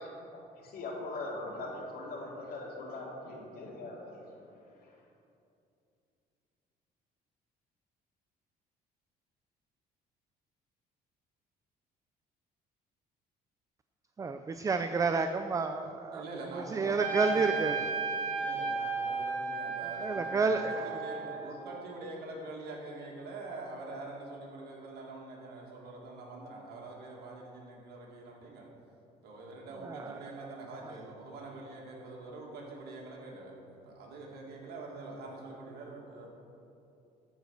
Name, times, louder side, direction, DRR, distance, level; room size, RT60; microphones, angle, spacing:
voice 1, 0.0-5.0 20.7-20.8 21.3-21.4, left 2 dB, 65° left, -2 dB, 2.5 m, -42 dB
voice 2, 14.2-16.2 16.5-17.8 19.8-21.0 29.8-30.2, right 4 dB, 20° right, 8 dB, 0.4 m, -30 dB
voice 3, 16.1-18.0 18.4-28.7 29.2-36.3, right 2 dB, 70° right, -2 dB, 2.4 m, -44 dB
Trumpet, 17.0-21.7, right 4 dB, 50° right, 2.5 m, -34 dB
13.5 x 5.1 x 6.5 m, 2.7 s
cardioid pair, 110°, 17 cm